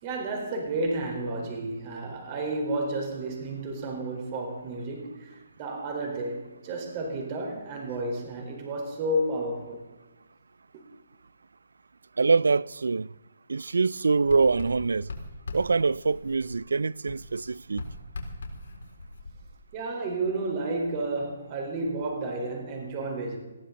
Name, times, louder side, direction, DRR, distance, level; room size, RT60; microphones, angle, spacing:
voice 1, 0.0-9.8 10.7-10.9 19.7-23.4, right 2 dB, 30° right, 4.4 m, -31 dB
voice 2, 12.2-13.1 13.5-15.1 15.5-17.9, right 4 dB, 85° right, 0.4 m, -24 dB
Writing, 14.1-16.7 17.1-19.8, left 2 dB, 65° left, 4.0 m, -41 dB
20.5 x 15.0 x 4.0 m
hypercardioid pair, 155°, 0 cm